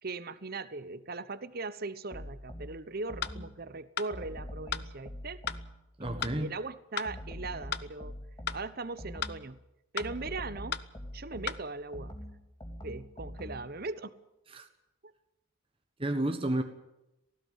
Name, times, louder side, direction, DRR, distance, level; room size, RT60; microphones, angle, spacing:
voice 1, 0.0-5.4 6.0-8.2 8.5-9.6 9.9-10.8 11.1-12.2 12.8-14.1, right 3 dB, 45° right, 15 dB, 1.0 m, -39 dB
sound 1, 2.1-3.6 4.1-6.6 7.1-9.5 10.0-13.8, equal, 20° left, 3.0 m, -44 dB
sound 2, 3.2-3.4 4.0-4.1 4.7-4.9 5.5-5.6 6.2-6.4 7.0-7.1 7.7-7.9 8.5-8.6 9.2-9.4 10.0-10.1 10.7-10.9 11.5-11.6, left 8 dB, 50° left, 0.8 m, -34 dB
voice 2, 6.0-6.5 14.5-14.7 16.0-16.6, right 1 dB, 25° right, 6 dB, 1.3 m, -31 dB
18.5 x 16.0 x 9.5 m, 0.91 s
head